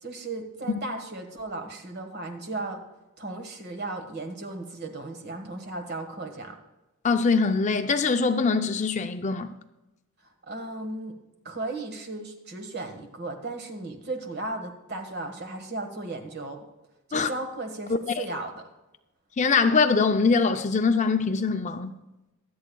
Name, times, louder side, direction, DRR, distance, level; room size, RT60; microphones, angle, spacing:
voice 1, 0.0-2.8 3.2-6.5 10.5-11.2 11.4-16.6 17.1-18.5, right 2 dB, 45° right, 1.5 m, -35 dB
voice 2, 7.0-9.5 17.1-17.3 18.1-18.3 19.4-21.9, left 4 dB, 35° left, 0.5 m, -23 dB
23.5 x 8.5 x 2.3 m
head